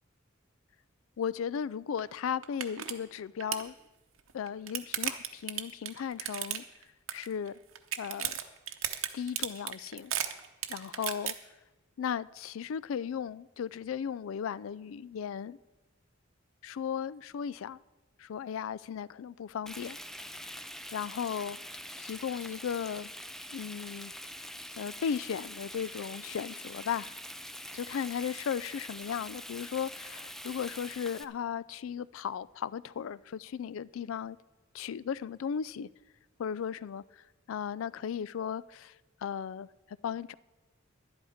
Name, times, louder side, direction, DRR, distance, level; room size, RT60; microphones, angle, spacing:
voice 1, 1.2-3.7 4.3-6.6 7.1-7.5 8.0-8.4 9.1-10.1 10.7-11.3 12.0-15.6 16.6-17.8 18.2-20.0 20.9-21.6 22.0-23.1 23.5-24.1 24.8-27.1 27.7-34.4 34.7-35.9 36.4-37.0 37.5-38.9 39.2-40.3, left 7 dB, 75° left, 0.3 m, -36 dB
sound 1, 2.0-2.1 2.4-2.9 3.2-3.7 4.3-6.8 7.1-7.5 7.8-11.3, right 11 dB, 90° right, 0.9 m, -34 dB
Frying (food), 19.7-31.2, equal, ahead, 0.4 m, -44 dB
11.5 x 11.0 x 5.0 m
head